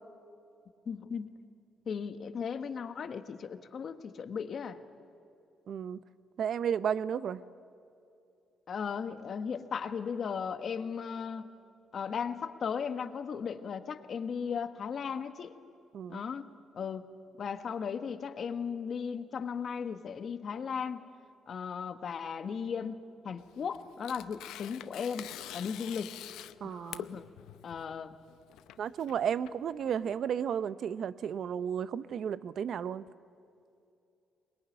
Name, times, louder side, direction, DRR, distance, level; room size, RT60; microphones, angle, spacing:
voice 1, 0.8-1.3 1.8-4.8 8.7-11.5 11.9-15.5 16.1-16.5 16.7-17.1 17.4-21.0 21.5-26.2 26.6-27.3 27.6-28.1, left 6 dB, 55° left, 10 dB, 1.4 m, -36 dB
voice 2, 5.7-6.0 6.4-7.4 15.9-16.2 26.6-27.1 28.8-33.0, right 8 dB, 65° right, 16 dB, 0.8 m, -33 dB
Tearing, 23.4-30.2, left 12 dB, 90° left, 0.7 m, -46 dB
21.5 x 21.5 x 9.9 m, 2.6 s
cardioid pair, 90°, 0 cm